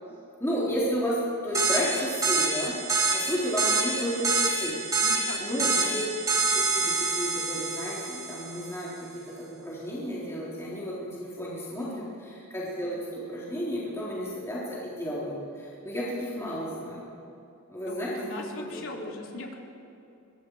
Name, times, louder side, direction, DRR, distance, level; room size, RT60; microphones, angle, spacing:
voice 1, 0.4-2.8 3.1-4.8 5.4-6.0 6.4-17.1 17.7-18.2 18.6-18.8, equal, 15° left, -7 dB, 4.0 m, -32 dB
sound 1, 1.5-8.7, right 3 dB, 15° right, 2.7 m, -27 dB
voice 2, 5.0-5.9 11.8-12.1 17.9-19.6, left 2 dB, 65° left, -1 dB, 3.6 m, -39 dB
24.0 x 22.5 x 4.9 m, 2.8 s
head